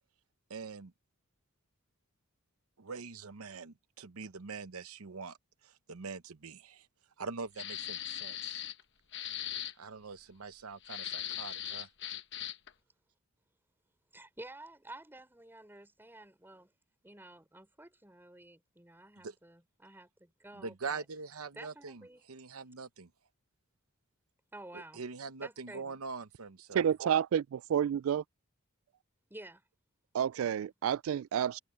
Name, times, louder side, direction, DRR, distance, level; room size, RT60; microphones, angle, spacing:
voice 1, 0.5-0.9 2.8-5.4 5.6-6.9 7.2-8.6 9.8-11.9 19.2-19.3 20.6-22.0 22.3-23.1 24.7-26.8, right 4 dB, 90° right, 0.9 m, -43 dB
sound 1, 7.6-8.8 9.1-9.7 10.8-12.7, left 11 dB, 55° left, 1.2 m, -39 dB
voice 2, 14.1-16.7 17.0-21.0 21.5-22.2 24.5-25.0 25.4-26.0 29.3-29.6, right 1 dB, 10° right, 4.1 m, -51 dB
voice 3, 26.7-28.2 30.1-31.6, right 8 dB, 70° right, 0.3 m, -30 dB
open air
head